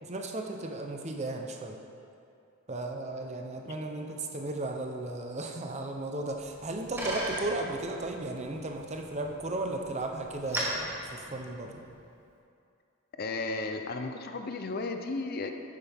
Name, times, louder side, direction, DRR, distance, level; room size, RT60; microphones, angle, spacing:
voice 1, 0.0-1.8 2.7-11.8, right 2 dB, 35° right, 3 dB, 0.8 m, -35 dB
Bicycle, 6.3-12.0, right 1 dB, 10° right, 1.6 m, -39 dB
voice 2, 13.2-15.5, left 3 dB, 45° left, 6 dB, 0.6 m, -34 dB
11.0 x 9.7 x 3.5 m, 2.5 s
head